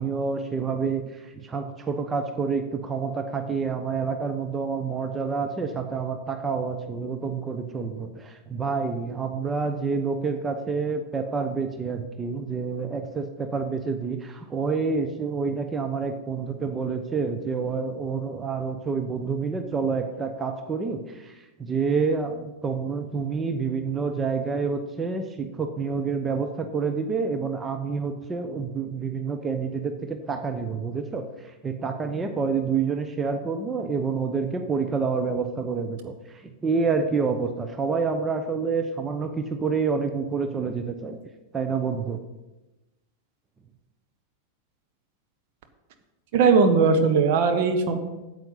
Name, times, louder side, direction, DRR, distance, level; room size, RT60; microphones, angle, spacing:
voice 1, 0.0-41.2 41.5-42.2, right 5 dB, 15° right, 6 dB, 0.8 m, -28 dB
voice 2, 46.3-48.0, right 5 dB, 50° right, 7 dB, 1.1 m, -19 dB
9.1 x 7.9 x 5.6 m, 1.1 s
figure-of-eight pair, 90°, 0 cm